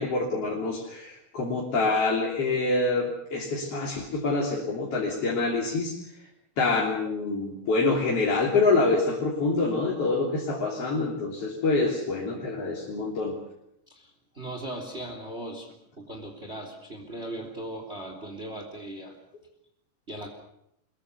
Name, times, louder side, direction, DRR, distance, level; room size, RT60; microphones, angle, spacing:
voice 1, 0.0-6.2 6.6-13.4, left 3 dB, 45° left, -3 dB, 4.1 m, -26 dB
voice 2, 13.9-15.7 16.0-19.2 20.1-20.3, right 1 dB, 20° right, 4 dB, 3.2 m, -38 dB
24.0 x 22.0 x 6.9 m, 0.78 s
omnidirectional pair, 3.9 m